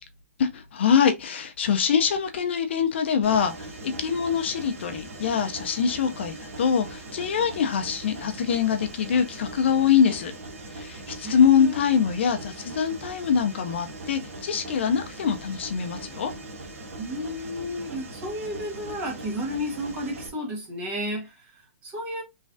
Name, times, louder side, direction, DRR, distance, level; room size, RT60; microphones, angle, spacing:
voice 1, 0.4-10.3 10.7-16.3, left 7 dB, 50° left, 0.4 m, -24 dB
Mechanisms, 3.2-20.3, right 2 dB, 70° right, 0.9 m, -40 dB
voice 2, 11.2-11.8 17.0-22.2, equal, 20° right, 0.8 m, -32 dB
3.1 x 2.3 x 2.5 m
hypercardioid pair, 170°, 8 cm